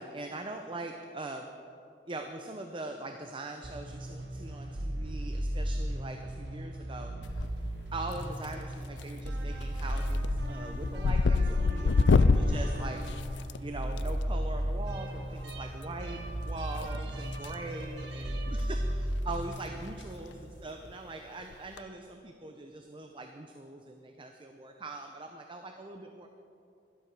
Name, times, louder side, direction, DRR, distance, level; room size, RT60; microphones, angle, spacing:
voice 1, 0.0-1.5 2.1-7.4 7.9-18.3 18.7-18.8 19.2-26.4, right 2 dB, 30° right, 5 dB, 0.6 m, -42 dB
bass&lead tune, 3.6-20.9, right 1 dB, 70° right, 1.4 m, -36 dB
sound 1, 7.2-7.8 8.1-8.6 9.0-9.3 9.6-14.0 15.4-15.5 16.7-17.5 17.8-18.0 18.6-18.7 18.9-19.0 19.4-19.6 19.9-20.0 21.5-21.8, left 4 dB, 85° left, 0.4 m, -27 dB
12.5 x 12.0 x 4.7 m, 2.6 s
head